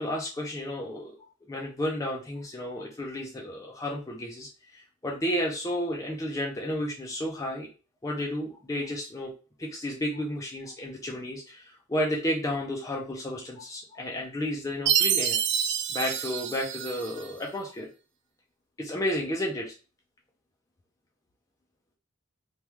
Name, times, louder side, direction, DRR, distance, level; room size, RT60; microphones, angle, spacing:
voice 1, 0.0-7.7 8.0-9.3 9.6-15.4 15.9-17.9 18.8-19.7, left 1 dB, 15° left, -1 dB, 0.4 m, -32 dB
Chime, 14.9-17.3, right 9 dB, 55° right, 0.4 m, -27 dB
3.4 x 2.2 x 3.0 m, 0.34 s
head